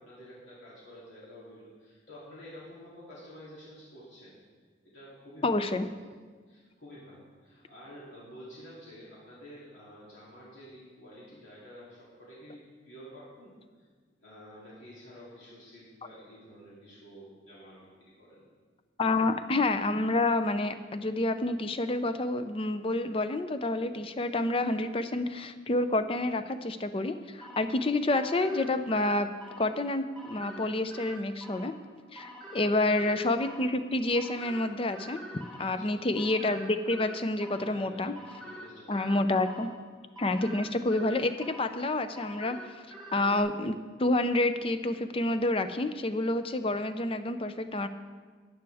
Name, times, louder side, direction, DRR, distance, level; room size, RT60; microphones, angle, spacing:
voice 1, 0.0-4.4 4.8-5.7 6.5-13.9 14.2-18.5 32.6-33.0 35.6-36.1 37.5-38.1 38.4-39.4, equal, 85° left, -8 dB, 2.9 m, -50 dB
voice 2, 5.4-5.9 19.0-29.3 29.6-31.7 32.1-35.2 35.6-38.1 38.9-39.7 40.2-42.6 43.1-47.9, left 2 dB, 30° left, 10 dB, 0.5 m, -28 dB
sound 1, 27.4-43.4, right 1 dB, 5° left, 1.3 m, -47 dB
14.0 x 10.0 x 3.5 m, 1.5 s
head